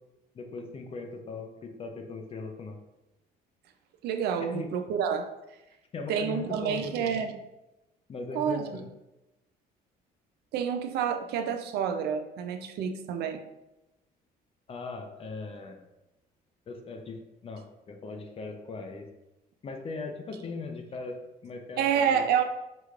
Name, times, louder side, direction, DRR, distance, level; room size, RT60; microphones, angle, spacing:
voice 1, 0.3-2.8 4.5-4.7 5.9-7.3 8.1-8.8 14.7-15.8 16.7-19.0 19.6-22.3, left 3 dB, 35° left, 4 dB, 0.6 m, -39 dB
voice 2, 4.0-5.3 6.1-7.4 8.3-8.8 10.5-13.4 21.8-22.4, right 7 dB, 75° right, 6 dB, 0.5 m, -28 dB
4.7 x 3.2 x 2.4 m, 0.96 s
cardioid pair, 110°, 17 cm